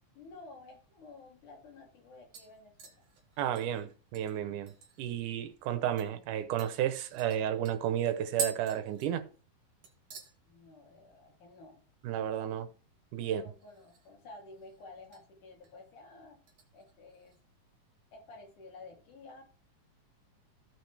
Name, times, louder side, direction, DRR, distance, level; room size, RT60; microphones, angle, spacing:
voice 1, 0.1-3.1 10.4-11.8 13.2-16.4 16.7-17.4 18.1-19.4, left 3 dB, 80° left, 4.4 m, -52 dB
sound 1, 1.3-1.4 1.7-2.0 2.3-5.2 5.5-5.6 6.0-6.1 6.6-9.6 9.8-10.3 10.7-11.1 11.4-11.5 13.6-14.2 14.5-15.2 15.6-15.9 16.5-17.4 17.7-17.8, right 5 dB, 60° right, 3.0 m, -44 dB
voice 2, 3.4-4.7 5.0-9.2 12.0-12.7 13.1-13.4, right 10 dB, 90° right, 2.4 m, -32 dB
15.0 x 6.1 x 3.3 m
omnidirectional pair, 3.5 m